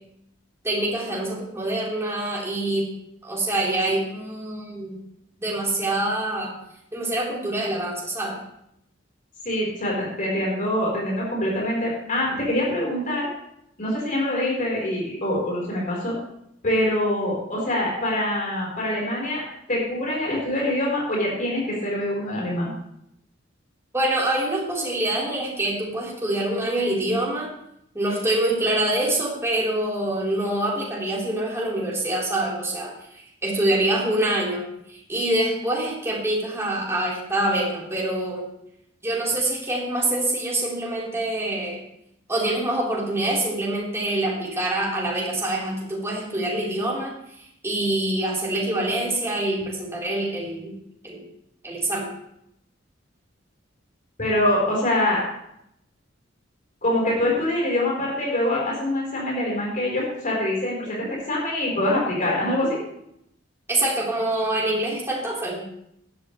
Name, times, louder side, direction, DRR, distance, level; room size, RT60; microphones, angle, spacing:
voice 1, 0.6-2.9 3.2-5.0 5.4-6.5 6.9-8.4 23.9-27.5 27.9-38.5 39.0-41.8 42.3-47.1 47.6-50.7 51.0-51.3 51.6-52.1 63.7-65.6, right 1 dB, 15° right, -5 dB, 4.0 m, -25 dB
voice 2, 9.4-13.3 13.8-16.2 16.6-19.4 19.7-22.7 54.2-55.2 56.8-62.8, left 1 dB, 45° left, -3 dB, 4.3 m, -24 dB
15.5 x 12.0 x 3.3 m, 0.76 s
head